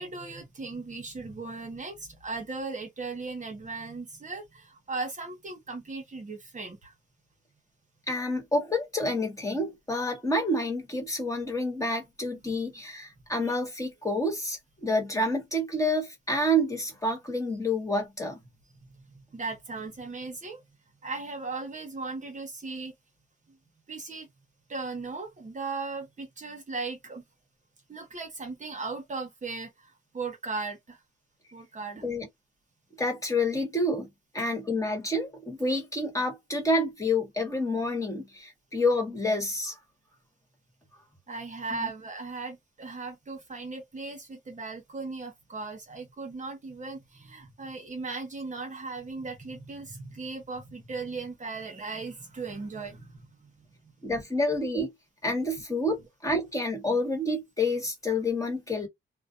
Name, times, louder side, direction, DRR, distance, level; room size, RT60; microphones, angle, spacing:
voice 1, 0.0-6.9 19.3-20.6 21.0-22.9 23.9-24.3 24.7-27.2 27.9-31.0 31.5-32.0 41.3-53.9, right 3 dB, 40° right, 0.9 m, -37 dB
voice 2, 8.1-18.4 32.0-32.3 33.0-34.1 34.3-39.7 41.7-41.9 54.0-54.9 55.2-58.9, left 1 dB, 15° left, 1.3 m, -28 dB
2.5 x 2.1 x 2.5 m
cardioid pair, 90°, 20 cm